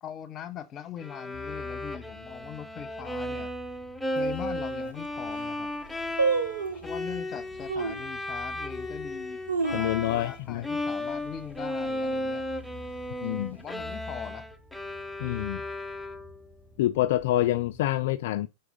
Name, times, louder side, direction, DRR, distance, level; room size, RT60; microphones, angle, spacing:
voice 1, 0.0-3.5 4.1-5.7 6.7-9.4 10.1-12.4 13.5-14.5, left 9 dB, 30° left, 1.2 m, -41 dB
Bowed string instrument, 1.0-10.4 10.6-16.5, left 1 dB, ahead, 0.9 m, -35 dB
sound 1, 1.3-17.8, left 3 dB, 35° right, 2.6 m, -50 dB
sound 2, 4.2-4.3 4.9-5.0 5.2-5.6 6.2-6.9 7.7-8.1 8.6-8.7 9.2-10.4 10.7-10.8 11.1-11.5 11.9-12.2 12.9-13.6 13.9-14.0, right 4 dB, 75° right, 1.1 m, -29 dB
voice 2, 9.7-10.7 13.2-13.6 15.2-15.6 16.8-18.5, left 14 dB, 60° left, 0.4 m, -27 dB
6.0 x 4.8 x 5.3 m
figure-of-eight pair, 95°, 0 cm